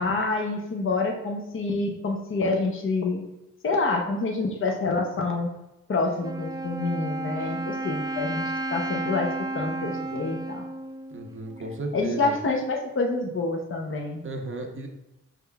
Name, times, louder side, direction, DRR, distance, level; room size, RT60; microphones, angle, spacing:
voice 1, 0.0-3.2 3.6-5.5 5.9-10.7 11.9-14.2, left 3 dB, 45° left, 2 dB, 0.7 m, -27 dB
Wind instrument woodwind instrument, 6.2-11.9, right 2 dB, 15° right, 0.3 m, -33 dB
voice 2, 11.1-12.3 14.2-14.9, right 2 dB, 45° right, 3 dB, 0.8 m, -34 dB
5.4 x 3.6 x 2.3 m, 0.91 s
cardioid pair, 50°, 30 cm